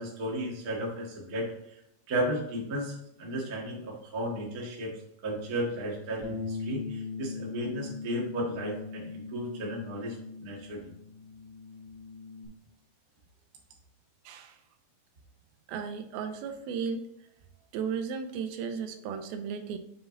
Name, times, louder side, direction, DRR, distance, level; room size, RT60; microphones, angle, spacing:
voice 1, 0.0-1.5 2.1-10.9, right 1 dB, 40° right, -3 dB, 1.3 m, -34 dB
Bass guitar, 6.2-12.5, left 4 dB, 60° right, 0.3 m, -40 dB
voice 2, 14.3-14.6 15.7-17.0 17.7-19.8, right 6 dB, 85° right, 8 dB, 2.6 m, -35 dB
6.9 x 5.9 x 3.9 m, 0.79 s
omnidirectional pair, 4.3 m